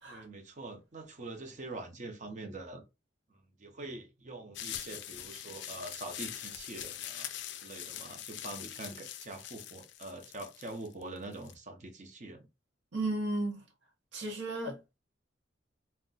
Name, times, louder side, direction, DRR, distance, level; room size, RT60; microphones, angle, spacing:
voice 1, 0.1-2.8 3.3-7.3 7.6-12.5, right 2 dB, 40° right, 0.7 m, -44 dB
sound 1, 4.5-11.5, left 11 dB, 65° left, 0.3 m, -43 dB
voice 2, 12.9-13.6 14.1-14.8, right 2 dB, 75° right, 0.8 m, -34 dB
2.4 x 2.1 x 3.8 m
head